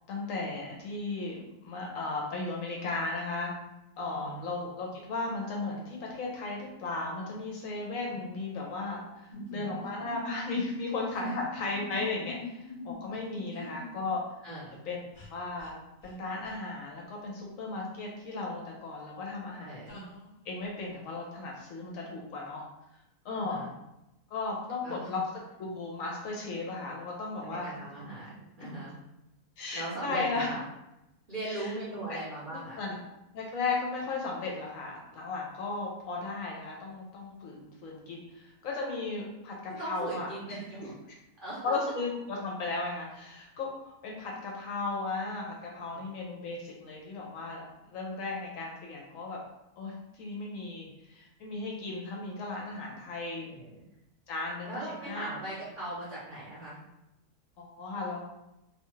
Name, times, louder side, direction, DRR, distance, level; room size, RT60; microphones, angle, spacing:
voice 1, 0.1-3.5 4.0-14.2 14.9-15.0 15.3-15.7 16.0-20.0 20.4-22.6 23.2-23.6 24.3-25.2 25.6-27.7 28.6-28.7 29.6-30.5 31.4-31.7 32.1-32.2 32.8-33.0 33.3-40.3 40.8-40.9 41.6-47.6 47.9-49.4 49.8-53.5 54.3-54.7 55.0-55.3 57.6-58.2, left 3 dB, 70° left, -2 dB, 0.9 m, -35 dB
voice 2, 4.1-4.4 9.3-9.6 11.1-11.3 13.5-13.8 14.4-14.8 19.6-19.9 23.3-23.7 24.8-25.1 27.4-29.0 29.7-30.6 31.3-32.8 39.8-41.7 45.9-46.0 53.4-53.8 54.6-56.8, right 2 dB, 45° right, -8 dB, 0.7 m, -39 dB
sound 1, 9.3-14.1 15.1-15.3 15.6-15.7 16.0-16.1 16.4-16.5 19.9-20.4, left 4 dB, 45° left, 1.1 m, -44 dB
2.6 x 2.3 x 3.0 m, 0.90 s
omnidirectional pair, 1.6 m